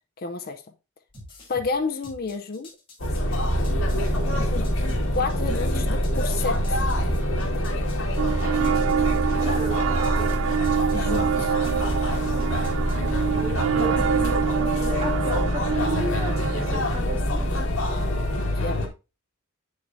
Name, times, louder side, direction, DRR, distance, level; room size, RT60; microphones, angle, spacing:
voice 1, 0.2-0.6 1.5-2.7 4.5-4.7 5.1-6.8 10.9-11.5 18.4-18.8, left 4 dB, 50° left, 0.7 m, -30 dB
sound 1, 1.1-13.4, left 1 dB, 25° left, 3.0 m, -46 dB
sound 2, 3.0-18.9, equal, 80° left, 2.0 m, -25 dB
sound 3, 8.2-16.8, right 8 dB, 80° right, 0.4 m, -26 dB
voice 2, 9.4-10.4 13.3-17.6, equal, 30° right, 2.2 m, -34 dB
8.7 x 6.4 x 2.7 m
head